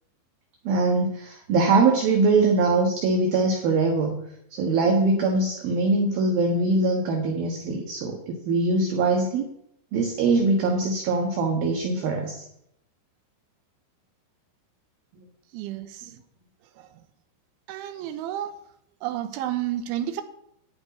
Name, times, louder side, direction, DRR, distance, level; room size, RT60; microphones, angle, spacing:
voice 1, 0.6-4.2 4.5-9.5 9.9-12.4, right 3 dB, 65° right, 1 dB, 2.9 m, -22 dB
voice 2, 15.5-16.0 17.7-18.5 19.0-20.2, right 12 dB, 85° right, 9 dB, 3.3 m, -30 dB
12.0 x 6.4 x 9.5 m, 0.76 s
omnidirectional pair, 5.5 m